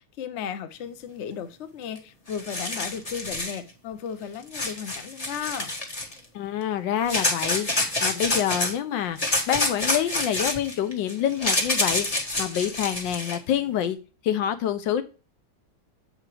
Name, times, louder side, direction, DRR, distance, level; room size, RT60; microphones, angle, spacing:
voice 1, 0.0-5.7, left 8 dB, 60° left, 10 dB, 0.7 m, -35 dB
sound 1, 2.0-2.1 2.3-3.6 4.5-6.2 7.1-8.7 9.2-13.4, left 2 dB, 25° left, 1.1 m, -27 dB
voice 2, 6.3-14.0 14.2-15.0, left 10 dB, 80° left, 11 dB, 1.4 m, -27 dB
7.8 x 3.8 x 4.8 m, 0.34 s
omnidirectional pair, 2.0 m